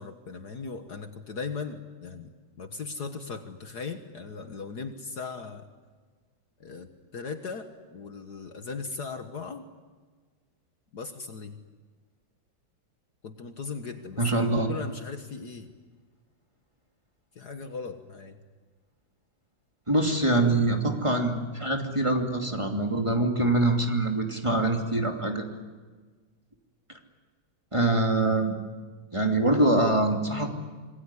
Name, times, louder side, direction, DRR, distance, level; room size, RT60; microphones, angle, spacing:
voice 1, 0.0-2.3 2.6-5.7 6.6-9.7 10.9-11.6 13.2-15.7 17.4-18.4, left 4 dB, 55° left, 7 dB, 1.9 m, -38 dB
voice 2, 14.2-14.7 19.9-25.5 27.7-28.5 29.1-30.5, right 2 dB, 15° right, 3 dB, 2.7 m, -24 dB
27.0 x 21.0 x 9.9 m, 1.4 s
omnidirectional pair, 2.2 m